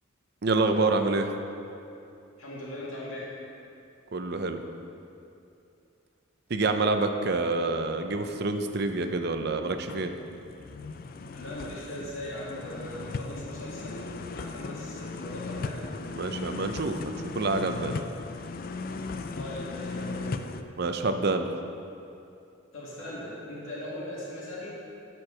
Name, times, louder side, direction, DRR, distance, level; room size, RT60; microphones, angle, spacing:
voice 1, 0.4-1.3 4.1-4.6 6.5-10.1 16.2-18.0 20.8-21.5, right 3 dB, 50° right, 7 dB, 0.6 m, -27 dB
voice 2, 2.4-3.3 11.3-15.9 19.3-20.4 22.7-24.7, left 1 dB, 80° left, -6 dB, 2.1 m, -39 dB
sound 1, 9.0-9.2 9.7-20.6, left 3 dB, 45° left, 0.4 m, -37 dB
13.0 x 4.7 x 6.3 m, 2.7 s
head